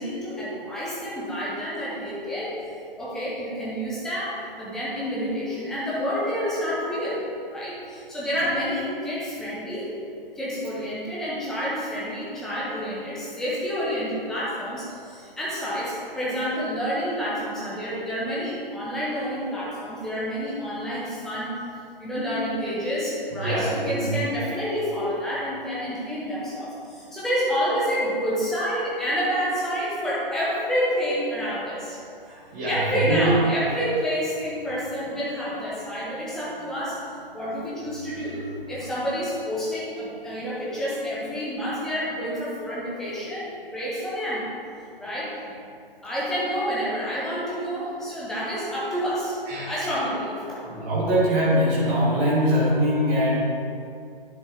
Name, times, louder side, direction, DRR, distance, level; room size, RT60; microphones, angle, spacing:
voice 1, 0.0-2.5 3.0-7.2 7.5-9.9 10.4-21.5 22.0-32.0 32.6-38.4 38.7-44.5 45.0-45.3 46.0-49.4 49.7-50.6, equal, ahead, -9 dB, 0.6 m, -28 dB
voice 2, 23.3-24.1 32.2-33.3 38.2-38.4 48.3-48.4 49.5-49.7 50.6-53.4, equal, 20° right, -8 dB, 1.7 m, -23 dB
10.5 x 5.2 x 3.5 m, 2.5 s
figure-of-eight pair, 140°, 30 cm